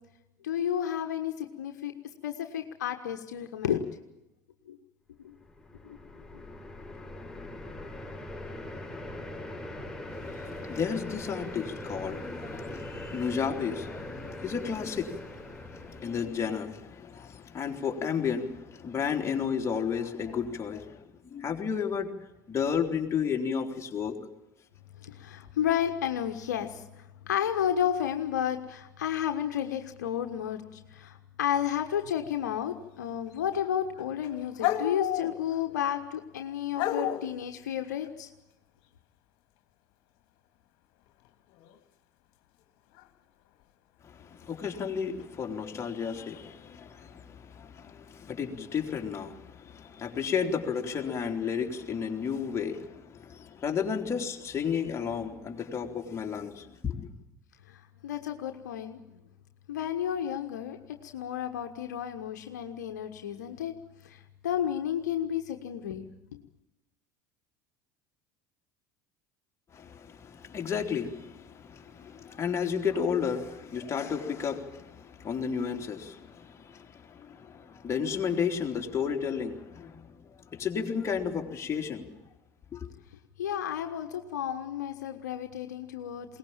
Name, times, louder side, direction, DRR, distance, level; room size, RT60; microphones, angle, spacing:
voice 1, 0.4-1.9 2.2-3.8 4.7-4.8 5.2-5.3 5.8-6.0 6.3-6.4 25.0-38.3 57.7-59.0 59.7-63.7 64.0-66.1 66.3-66.4 83.4-86.4, left 9 dB, 75° left, 1.4 m, -32 dB
sound 1, 5.3-16.7, left 1 dB, 5° left, 5.2 m, -41 dB
voice 2, 10.1-22.1 22.5-24.2 44.0-57.0 69.7-82.1 82.7-82.9, left 6 dB, 30° left, 3.6 m, -33 dB
sound 2, 33.3-33.7 34.0-35.7 36.7-37.3 41.5-41.8 43.0-43.1 45.2-45.3 46.2-46.4, left 11 dB, 60° left, 2.3 m, -31 dB
22.0 x 19.0 x 8.9 m
hypercardioid pair, 70°, 9 cm